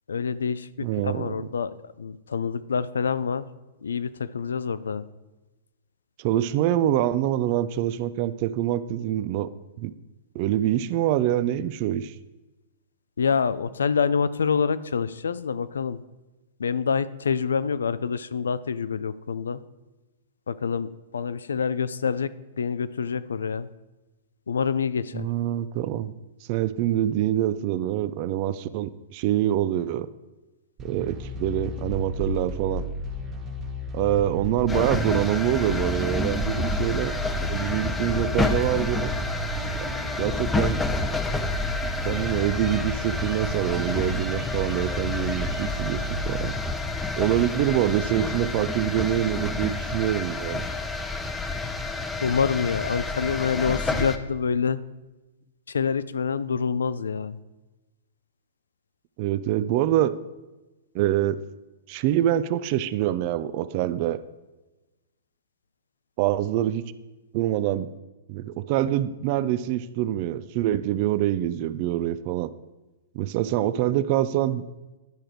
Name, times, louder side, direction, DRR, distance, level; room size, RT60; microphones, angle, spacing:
voice 1, 0.1-3.5 3.8-5.0 13.2-16.0 16.6-19.6 20.5-22.3 22.6-23.7 24.5-25.3 52.2-54.8 55.7-57.4, left 6 dB, 85° left, 15 dB, 0.4 m, -26 dB
voice 2, 0.8-1.5 6.2-9.5 9.8-9.9 10.3-12.1 25.1-26.1 26.5-30.1 30.8-32.8 33.9-37.2 37.5-39.1 39.7-39.9 40.2-40.8 42.0-46.6 47.2-50.7 59.2-60.1 60.9-61.4 61.9-64.2 66.2-66.8 67.3-67.9 68.3-72.5 73.1-74.6, right 12 dB, 45° right, 15 dB, 0.4 m, -25 dB
sound 1, 30.8-48.1, left 1 dB, 25° right, 1.0 m, -33 dB
sound 2, 34.7-54.2, left 3 dB, 10° left, 0.7 m, -29 dB
10.5 x 5.0 x 4.6 m, 1.1 s
hypercardioid pair, 120°, 0 cm